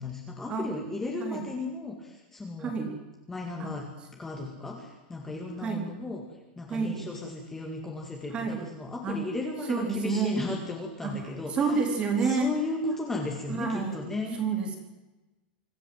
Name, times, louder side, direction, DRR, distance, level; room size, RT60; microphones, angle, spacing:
voice 1, 0.0-2.8 3.3-11.8 12.2-14.4, left 2 dB, 5° left, 0 dB, 2.1 m, -35 dB
voice 2, 2.6-2.9 3.6-3.7 5.6-5.9 6.7-7.0 8.3-8.6 9.0-9.2 9.7-10.3 11.0-11.1 11.5-12.5 13.6-14.1 14.4-14.8, right 5 dB, 20° right, 4 dB, 3.8 m, -29 dB
25.0 x 14.5 x 7.7 m, 1.1 s
supercardioid pair, 175°, 5 cm